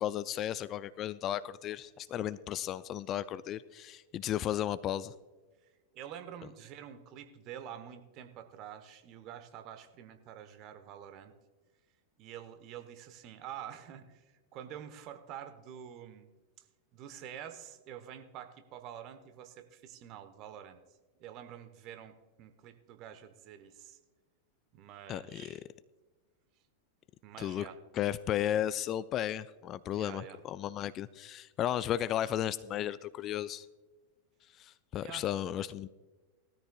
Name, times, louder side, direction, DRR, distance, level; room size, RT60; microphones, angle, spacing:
voice 1, 0.0-5.1 25.1-25.6 27.4-27.7 27.9-33.7 34.6-35.9, left 11 dB, 30° left, 16 dB, 0.4 m, -34 dB
voice 2, 5.9-11.3 12.2-16.3 16.6-16.7 16.9-20.8 21.2-24.0 24.7-25.6 27.2-27.8 29.9-30.4 35.0-35.3, right 9 dB, 40° right, 9 dB, 1.1 m, -47 dB
19.0 x 13.5 x 2.3 m, 1.3 s
figure-of-eight pair, 90°, 0 cm